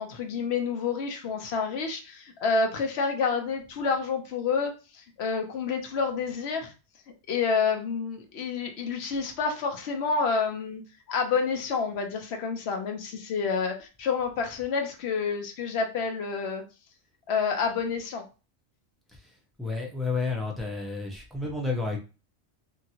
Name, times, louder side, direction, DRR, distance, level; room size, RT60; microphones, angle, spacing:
voice 1, 0.0-6.7 7.3-10.8 11.1-16.6 17.3-18.2, left 5 dB, 75° left, 4 dB, 0.9 m, -29 dB
voice 2, 19.6-22.0, left 3 dB, ahead, -2 dB, 0.4 m, -30 dB
2.8 x 2.5 x 2.7 m, 0.32 s
omnidirectional pair, 1.1 m